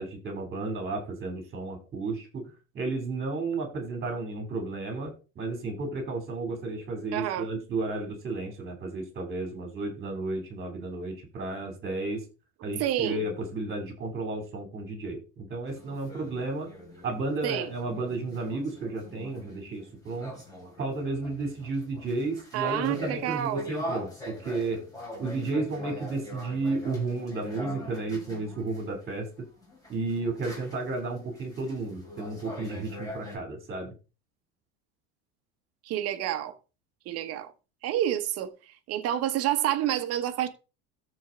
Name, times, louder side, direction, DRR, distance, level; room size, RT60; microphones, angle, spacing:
voice 1, 0.0-12.2 12.6-16.7 17.0-20.3 20.8-24.8 25.2-29.5 29.9-33.9, right 3 dB, 30° right, 2.9 m, -33 dB
voice 2, 7.1-7.5 12.8-13.2 17.4-17.7 22.5-23.6 35.8-36.5 37.0-37.5 37.8-38.5 38.9-40.5, right 12 dB, 50° right, 1.4 m, -28 dB
sound 1, 15.7-28.9 29.6-33.4, left 1 dB, 10° left, 4.6 m, -43 dB
13.5 x 4.7 x 3.8 m
supercardioid pair, 140°, 33 cm